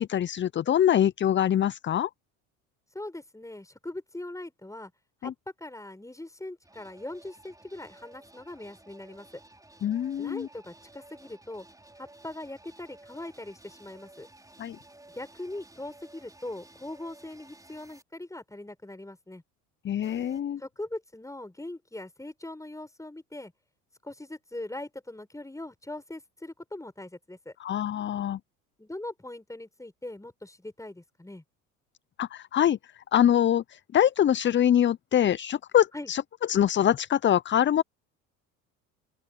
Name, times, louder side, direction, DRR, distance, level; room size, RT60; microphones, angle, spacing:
voice 1, 0.0-2.1 5.2-5.3 9.8-10.5 14.6-14.8 19.8-20.6 27.6-28.4 32.2-36.2 36.5-37.8, left 10 dB, 25° left, 0.7 m, -24 dB
voice 2, 2.9-4.9 5.2-5.3 5.6-9.3 10.2-11.7 12.0-14.3 15.1-19.4 20.6-23.5 24.0-27.5 28.8-31.4 35.9-36.1, left 1 dB, 5° left, 7.2 m, -41 dB
sound 1, 6.6-18.0 20.0-20.4, right 2 dB, 10° right, 5.5 m, -54 dB
open air
hypercardioid pair, 70°, 42 cm